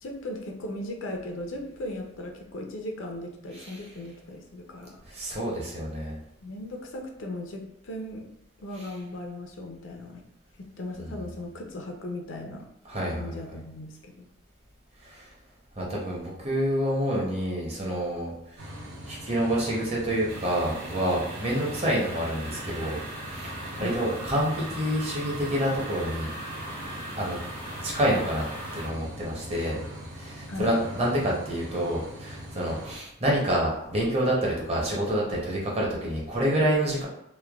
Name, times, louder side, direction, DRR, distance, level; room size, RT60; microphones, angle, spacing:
voice 1, 0.0-5.0 6.4-8.3 8.6-10.2 10.6-12.7 13.2-14.3 23.7-24.0 30.5-30.7, left 1 dB, 75° left, 2 dB, 0.5 m, -37 dB
voice 2, 5.1-6.2 8.8-8.9 11.0-11.1 12.8-13.3 15.0-15.3 15.8-18.7 19.1-23.0 23.3-26.3 27.2-27.4 27.8-28.4 28.7-29.8 30.1-37.1, equal, 30° right, -4 dB, 0.6 m, -28 dB
sound 1, 18.6-33.0, equal, 90° right, 0.8 m, -42 dB
sound 2, 20.3-28.9, right 1 dB, 55° right, 1.2 m, -39 dB
3.1 x 2.1 x 2.3 m, 0.81 s
head